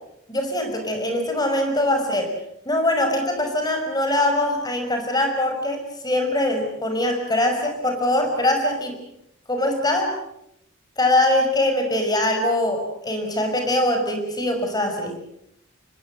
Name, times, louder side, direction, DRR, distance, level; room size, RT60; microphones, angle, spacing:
voice 1, 0.3-2.3 2.7-9.0 9.5-10.1 11.0-15.2, left 1 dB, 20° left, 5 dB, 5.8 m, -22 dB
26.5 x 20.5 x 7.8 m, 0.79 s
head